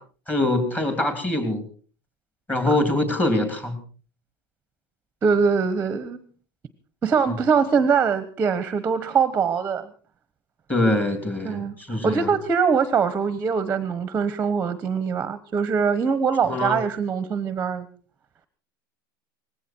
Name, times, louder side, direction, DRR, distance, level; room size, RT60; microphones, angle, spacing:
voice 1, 0.3-1.6 2.5-3.8 10.7-12.3 16.4-16.8, left 1 dB, 15° left, 7 dB, 3.1 m, -23 dB
voice 2, 5.2-6.2 7.0-9.9 11.4-17.9, right 6 dB, 15° right, 13 dB, 1.2 m, -23 dB
19.5 x 16.0 x 4.6 m, 0.41 s
supercardioid pair, 150°, 12 cm